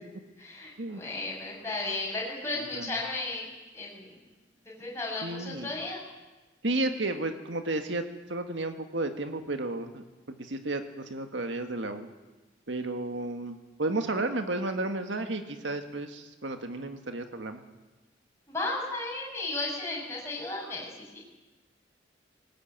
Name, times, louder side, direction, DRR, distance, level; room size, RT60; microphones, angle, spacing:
voice 1, 0.4-3.5 3.7-4.2 4.7-6.0 18.5-21.2, left 2 dB, 15° left, -4 dB, 6.9 m, -34 dB
voice 2, 5.2-5.7 6.6-10.0 10.4-12.1 12.7-17.6, right 2 dB, 80° right, 7 dB, 1.7 m, -32 dB
19.5 x 19.5 x 9.0 m, 1.1 s
head